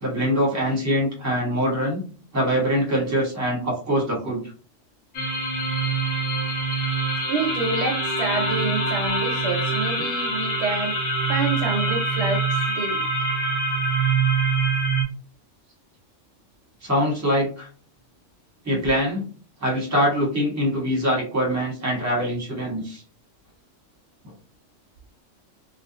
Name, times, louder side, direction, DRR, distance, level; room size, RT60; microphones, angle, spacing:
voice 1, 0.0-2.0 2.3-4.4 16.8-17.7 18.6-19.2 19.6-23.0 24.2-24.3, equal, 15° right, 0.8 m, -23 dB
sound 1, 5.1-15.0, right 3 dB, 65° left, 1.1 m, -24 dB
voice 2, 7.3-13.1, right 3 dB, 70° right, 0.8 m, -28 dB
2.4 x 2.2 x 2.6 m
omnidirectional pair, 1.3 m